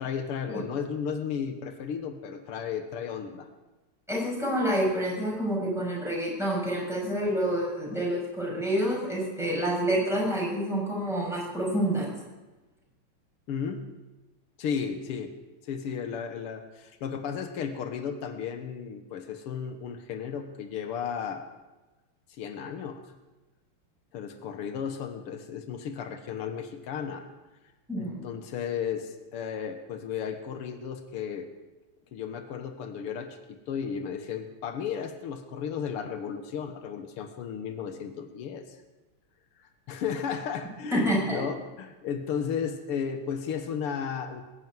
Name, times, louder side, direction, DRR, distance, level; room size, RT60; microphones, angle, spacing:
voice 1, 0.0-3.5 13.5-13.9 14.6-15.3 15.6-21.4 22.4-23.0 24.1-27.3 28.0-31.5 32.1-38.8 39.6-44.4, left 7 dB, 85° left, 7 dB, 2.1 m, -34 dB
voice 2, 4.1-12.1 27.9-28.2 40.9-41.4, right 1 dB, ahead, -4 dB, 7.4 m, -28 dB
20.5 x 7.2 x 9.4 m, 1.1 s
omnidirectional pair, 2.4 m